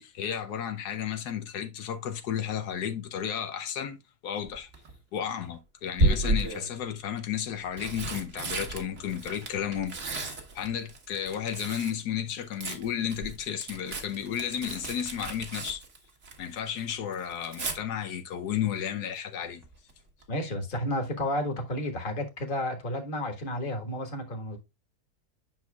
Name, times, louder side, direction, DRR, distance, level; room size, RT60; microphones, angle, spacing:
voice 1, 0.0-4.0 4.2-4.7 5.1-15.8 16.4-19.6, left 9 dB, 80° left, 1.3 m, -33 dB
Tearing, 4.5-4.9 6.0-6.7 7.5-12.0 12.3-16.6 16.9-17.8 19.6-19.9 20.2-20.3, right 2 dB, 50° right, 1.6 m, -32 dB
voice 2, 20.3-24.6, left 1 dB, 35° left, 1.6 m, -31 dB
9.5 x 6.1 x 2.3 m
omnidirectional pair, 1.7 m